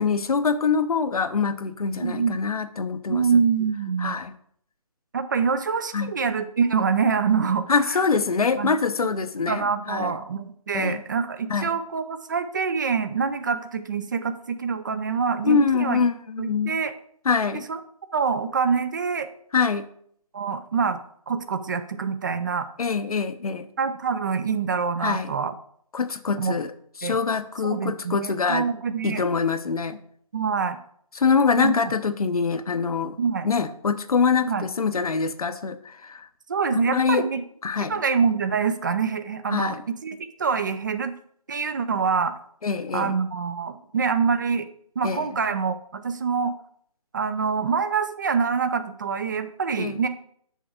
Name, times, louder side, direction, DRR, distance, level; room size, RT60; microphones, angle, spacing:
voice 1, 0.0-3.2 4.0-4.3 5.9-6.1 7.7-10.1 10.7-11.0 11.5-11.7 15.4-16.8 17.2-17.6 19.5-19.8 22.8-23.7 25.0-25.3 25.9-26.7 27.0-28.7 29.0-30.0 31.1-33.2 33.4-36.3 36.7-37.2 37.6-37.9 39.5-39.8 42.6-43.1 45.0-45.3 49.8-50.0, left 5 dB, 75° left, 10 dB, 0.8 m, -24 dB
voice 2, 2.0-2.4 3.1-4.1 5.1-8.0 8.6-8.8 9.5-16.0 16.4-16.9 17.7-17.8 18.1-19.3 20.3-21.0 21.3-22.7 23.8-25.6 26.4-26.5 27.0-27.2 27.6-29.2 30.3-30.8 31.6-31.7 33.2-33.5 34.5-34.6 36.5-37.4 37.8-41.2 41.5-42.3 42.9-44.7 45.0-46.5 47.1-50.1, right 6 dB, 30° right, 11 dB, 0.5 m, -25 dB
6.4 x 4.6 x 6.5 m, 0.65 s
figure-of-eight pair, 155°, 19 cm